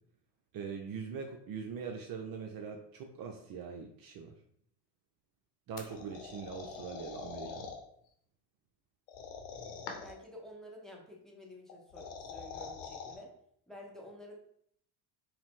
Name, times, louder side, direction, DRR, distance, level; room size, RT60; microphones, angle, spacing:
voice 1, 0.5-4.3 5.7-7.7, right 6 dB, 45° right, 3 dB, 0.6 m, -42 dB
sound 1, 5.8-7.8 9.1-10.2 11.7-13.2, left 5 dB, 80° left, 0.9 m, -44 dB
voice 2, 10.0-13.3 13.7-14.4, left 1 dB, ahead, -1 dB, 0.9 m, -50 dB
4.6 x 2.1 x 3.6 m, 0.69 s
hypercardioid pair, 75°, 49 cm